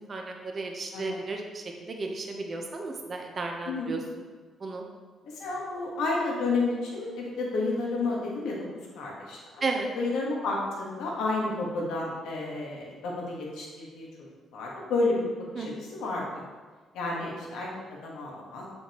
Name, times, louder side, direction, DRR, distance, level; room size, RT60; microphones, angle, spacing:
voice 1, 0.1-4.0 4.6-4.8 9.6-9.9 15.5-15.8 17.2-17.8, right 3 dB, 45° right, 2 dB, 1.0 m, -34 dB
voice 2, 5.3-9.6 10.0-15.3 15.6-16.4 16.9-18.6, left 3 dB, 85° left, -3 dB, 1.6 m, -31 dB
7.0 x 6.3 x 3.1 m, 1.4 s
cardioid pair, 90°, 0 cm